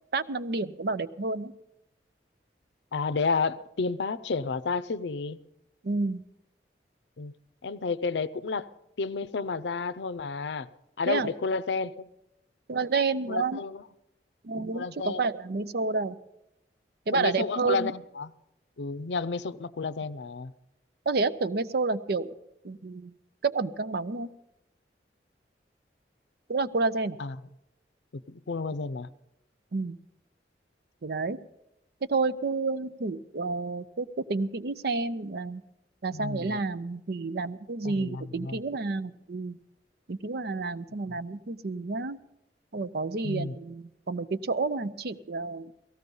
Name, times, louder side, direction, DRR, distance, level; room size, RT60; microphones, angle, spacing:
voice 1, 0.1-1.5 5.8-6.2 11.1-11.3 12.7-13.6 14.4-16.2 17.1-17.9 21.1-22.3 22.6-23.1 23.4-24.3 26.5-27.2 29.7-30.0 31.0-31.4 32.1-35.6 36.0-39.6 40.1-42.2 42.7-45.7, right 3 dB, 60° right, 13 dB, 0.6 m, -30 dB
voice 2, 2.9-5.4 7.2-7.3 7.6-8.7 9.0-10.7 11.0-12.1 13.3-13.8 14.6-15.2 17.1-18.3 18.8-20.5 27.2-27.4 28.1-29.1 36.1-36.6 37.8-38.6 41.1-41.2 43.2-43.5, left 4 dB, 80° left, 16 dB, 0.6 m, -31 dB
17.5 x 15.0 x 5.4 m, 0.86 s
head